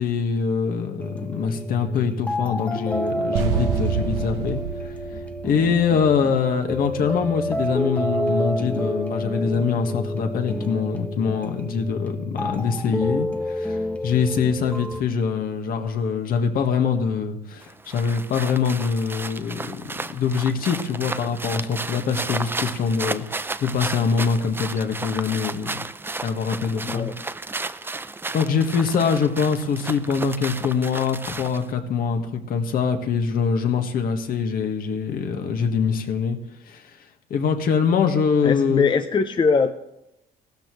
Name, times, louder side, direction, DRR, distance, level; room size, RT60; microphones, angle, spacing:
voice 1, 0.0-4.9 5.4-19.8 20.1-25.8 26.2-27.1 27.8-28.0 28.3-36.4 36.7-36.9 37.3-39.0, left 6 dB, 60° left, 5 dB, 1.7 m, -24 dB
sound 1, 1.0-15.0, left 1 dB, 10° left, 1.0 m, -29 dB
sound 2, 3.3-6.3, right 7 dB, 90° right, 0.9 m, -27 dB
sound 3, 17.6-31.7, right 3 dB, 15° right, 0.5 m, -33 dB
voice 2, 38.4-39.7, left 5 dB, 30° left, 7 dB, 0.7 m, -21 dB
15.5 x 13.0 x 3.2 m, 0.87 s
cardioid pair, 110°, 17 cm